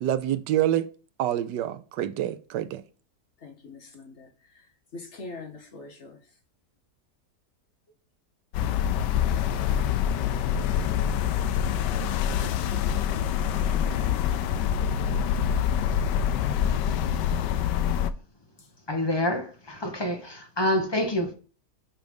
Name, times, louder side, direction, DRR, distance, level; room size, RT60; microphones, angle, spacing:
voice 1, 0.0-0.9 1.2-2.8, right 12 dB, 85° right, 1.3 m, -26 dB
voice 2, 3.4-6.2 13.7-14.2 18.6-18.7, left 3 dB, 45° left, 1.2 m, -43 dB
sound 1, 8.5-18.1, left 9 dB, 85° left, 1.2 m, -25 dB
voice 3, 18.9-21.3, left 1 dB, 20° left, 0.9 m, -27 dB
5.9 x 5.2 x 5.3 m
omnidirectional pair, 1.8 m